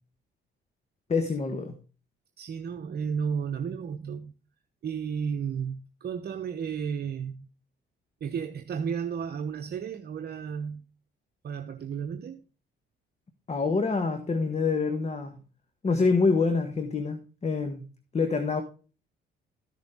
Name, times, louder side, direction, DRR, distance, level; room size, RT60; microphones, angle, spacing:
voice 1, 1.1-1.7 13.5-15.4 15.8-17.8 18.1-18.6, left 4 dB, 35° left, 1.5 m, -26 dB
voice 2, 2.4-4.3 4.8-7.5 8.2-10.8 11.4-12.4, right 7 dB, 55° right, 1.0 m, -33 dB
14.0 x 6.8 x 3.7 m
cardioid pair, 90°, 20 cm